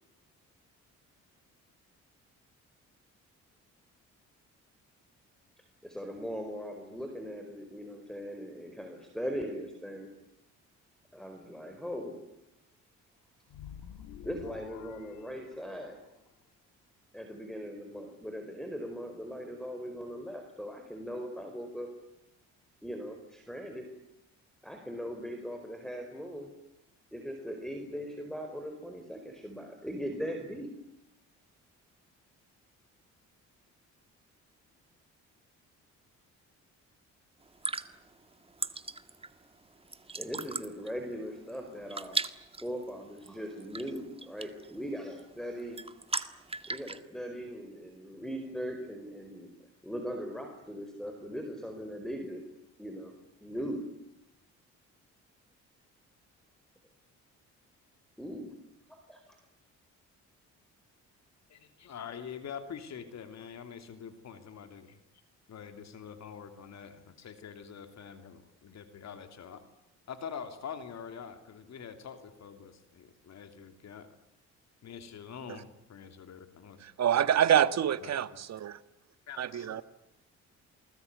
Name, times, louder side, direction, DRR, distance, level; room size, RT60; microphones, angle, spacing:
voice 1, 5.8-10.1 11.1-12.2 14.2-16.1 17.1-21.9 22.8-23.9 24.6-26.5 27.1-30.7 40.1-42.2 42.6-45.8 46.7-49.5 49.8-52.4 52.8-53.1 53.4-53.8 58.2-58.5 58.9-59.4, equal, ahead, 4.7 m, -39 dB
sound 1, 13.5-16.1, left 9 dB, 90° left, 1.6 m, -49 dB
sound 2, 37.4-47.0, right 3 dB, 20° right, 1.7 m, -39 dB
voice 2, 61.5-65.0 65.5-69.6 70.1-74.1 74.8-76.8 78.0-78.1 79.3-79.8, left 7 dB, 60° left, 3.2 m, -45 dB
voice 3, 76.8-78.8 79.4-79.8, right 9 dB, 60° right, 1.6 m, -26 dB
28.0 x 20.5 x 9.7 m
cardioid pair, 90°, 30 cm